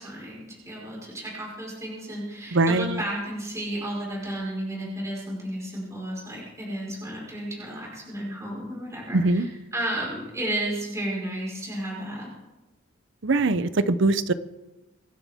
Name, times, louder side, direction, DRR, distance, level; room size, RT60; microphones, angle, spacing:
voice 1, 0.0-12.3, right 1 dB, 15° right, -5 dB, 4.8 m, -33 dB
voice 2, 2.5-3.0 9.1-9.5 13.2-14.3, right 2 dB, 60° right, 14 dB, 0.7 m, -22 dB
25.0 x 11.0 x 3.6 m, 1.1 s
head